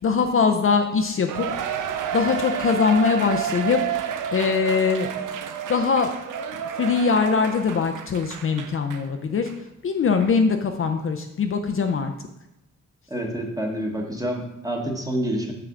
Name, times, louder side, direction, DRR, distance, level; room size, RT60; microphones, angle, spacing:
voice 1, 0.0-1.8 2.1-5.1 5.7-6.1 6.8-9.5 9.8-12.1, left 5 dB, 45° left, 5 dB, 0.5 m, -22 dB
Cheering, 1.3-9.1 9.5-9.6 10.2-10.3, right 7 dB, 90° right, 0.5 m, -30 dB
voice 2, 13.1-15.5, right 1 dB, 10° right, 1 dB, 1.2 m, -28 dB
6.5 x 5.9 x 3.7 m, 0.87 s
cardioid pair, 110°, 30 cm